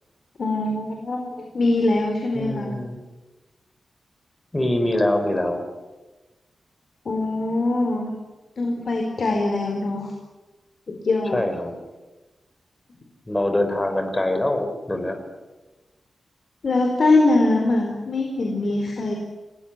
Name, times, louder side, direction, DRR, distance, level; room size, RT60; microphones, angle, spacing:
voice 1, 0.4-2.8 7.0-8.1 8.6-10.1 11.0-11.4 16.6-19.1, left 2 dB, 45° left, 3 dB, 4.6 m, -22 dB
voice 2, 2.3-3.0 4.5-5.6 11.3-11.7 13.3-15.2, left 1 dB, 15° left, 7 dB, 4.0 m, -24 dB
29.0 x 20.0 x 10.0 m, 1.2 s
wide cardioid pair, 170°, 0 cm